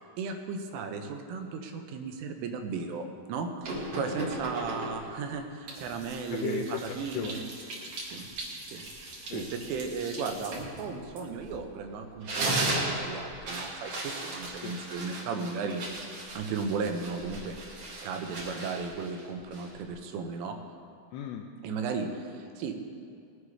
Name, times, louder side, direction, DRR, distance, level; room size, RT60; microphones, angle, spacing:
voice 1, 0.2-6.6 7.0-7.4 8.1-8.3 8.7-8.8 9.3-15.8 16.4-17.6 18.0-20.6 21.6-22.7, right 5 dB, 90° right, 5 dB, 3.5 m, -35 dB
sound 1, 3.6-5.2 5.7-11.7 12.1-19.9, right 2 dB, 60° right, 1.6 m, -37 dB
voice 2, 3.9-4.4 6.3-8.0 9.3-9.5 14.6-14.8 21.1-21.9, left 8 dB, 85° left, 1 dB, 2.4 m, -38 dB
19.5 x 8.2 x 4.9 m, 2.3 s
omnidirectional pair, 5.5 m